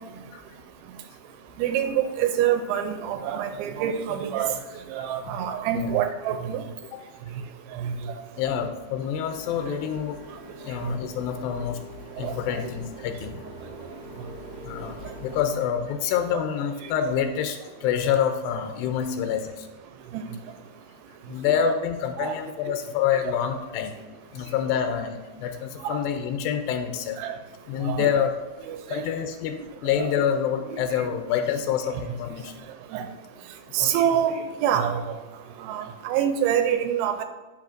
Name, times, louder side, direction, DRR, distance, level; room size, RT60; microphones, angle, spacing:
voice 1, 1.6-4.5 4.9-6.6 7.8-8.1 10.9-11.0 12.2-12.3 16.3-16.4 22.2-22.3 25.8-26.0 27.2-27.4 27.8-28.1 28.7-29.0 30.0-30.1 32.9-33.0 33.7-35.0 35.6-37.2, right 9 dB, 80° right, 8 dB, 2.3 m, -26 dB
voice 2, 8.4-10.2 10.6-11.8 12.2-13.4 14.7-19.7 21.3-23.9 24.3-27.2 27.7-28.3 28.9-29.6 29.8-32.5 33.8-33.9, left 8 dB, 80° left, 6 dB, 2.2 m, -27 dB
Printer, 9.2-15.5, right 1 dB, 35° left, 1.1 m, -43 dB
8.7 x 5.9 x 2.6 m, 1.2 s
omnidirectional pair, 4.5 m